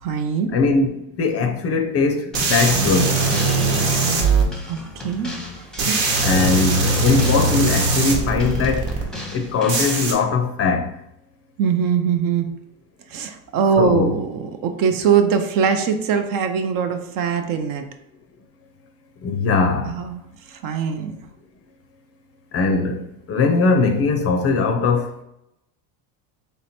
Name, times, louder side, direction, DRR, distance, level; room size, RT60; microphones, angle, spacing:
voice 1, 0.0-0.5 4.7-6.3 11.6-12.5 13.1-17.9 19.8-20.2 20.5-21.2, right 7 dB, 50° right, 0.6 m, -22 dB
voice 2, 0.5-3.2 6.2-8.9 9.3-10.9 13.8-14.1 19.2-20.0 22.5-25.1, left 4 dB, 35° left, 0.5 m, -20 dB
sound 1, 2.3-10.1, left 1 dB, ahead, 0.8 m, -36 dB
sound 2, 2.3-4.4 5.8-9.0 9.7-10.1, right 3 dB, 70° right, 1.2 m, -20 dB
3.3 x 2.9 x 4.2 m
supercardioid pair, 105°, 45 cm